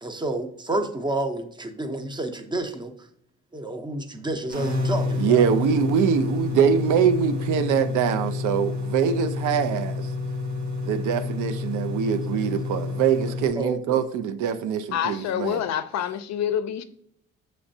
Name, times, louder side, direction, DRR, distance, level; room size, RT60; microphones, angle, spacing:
voice 1, 0.0-2.9 3.5-5.4 13.6-14.0, right 2 dB, 15° right, 0.6 m, -29 dB
sound 1, 4.5-13.5, left 3 dB, 65° right, 1.4 m, -29 dB
voice 2, 5.2-10.1 10.8-15.6, right 7 dB, 80° right, 0.5 m, -23 dB
voice 3, 14.9-16.8, left 9 dB, 65° left, 0.4 m, -27 dB
5.9 x 3.1 x 2.6 m
cardioid pair, 90°, 30 cm